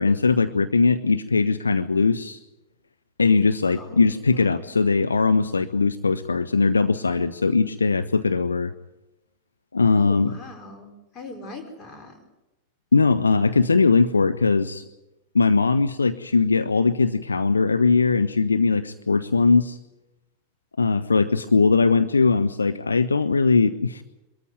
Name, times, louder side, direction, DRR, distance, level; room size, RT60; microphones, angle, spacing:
voice 1, 0.0-2.4 3.2-8.7 9.7-10.3 12.9-14.8 15.3-19.8 20.8-24.0, left 4 dB, 75° left, 12 dB, 0.7 m, -20 dB
voice 2, 3.6-4.7 10.0-12.2, left 2 dB, 30° left, 4 dB, 5.4 m, -41 dB
23.0 x 14.0 x 9.5 m, 0.96 s
figure-of-eight pair, 90°, 0 cm